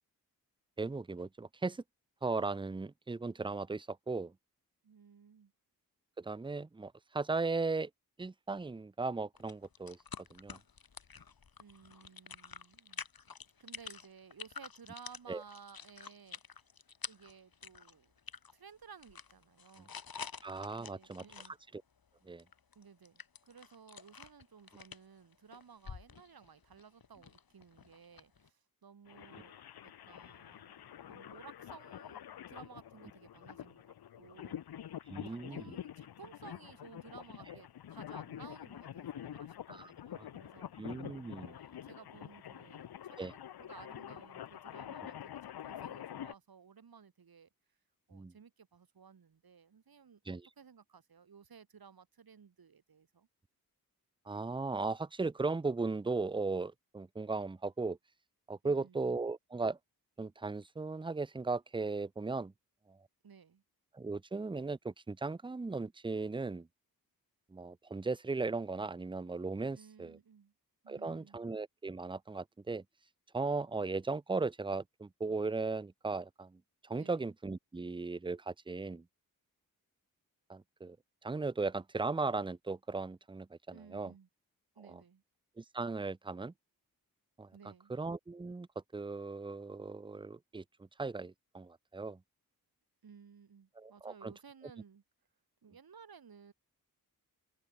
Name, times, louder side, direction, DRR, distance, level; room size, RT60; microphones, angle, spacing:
voice 1, 0.8-1.8 2.2-4.3 6.2-7.9 8.2-10.0 10.3-10.6 15.3-15.4 20.4-21.2 21.7-21.8 22.2-22.4 35.1-35.7 39.7-39.9 40.2-40.3 40.8-41.6 43.2-43.3 48.1-48.3 50.3-50.5 54.3-58.0 58.5-59.8 60.2-62.5 62.9-63.0 63.9-66.7 67.5-70.2 70.9-72.8 73.3-79.0 80.5-81.0 81.2-84.1 84.9-85.0 85.6-86.5 87.4-87.5 87.9-88.7 88.9-90.6 91.0-92.2 93.8-94.3, right 3 dB, 15° right, 0.5 m, -37 dB
voice 2, 4.8-5.5 11.6-13.0 13.6-16.6 17.1-18.1 18.5-20.0 20.8-21.6 22.7-29.6 29.8-34.8 35.2-40.7 41.4-47.5 48.1-53.3 58.6-59.1 63.2-63.6 69.7-70.5 70.8-71.4 76.9-77.2 83.7-84.3 84.7-85.2 87.5-87.9 93.0-95.0 95.6-96.5, right 6 dB, 70° right, 5.0 m, -57 dB
sound 1, 9.4-18.5 18.8-21.5 22.4-28.5, left 6 dB, 70° left, 5.1 m, -49 dB
sound 2, 29.1-46.3, left 10 dB, 90° left, 0.9 m, -47 dB
cardioid pair, 65°, 37 cm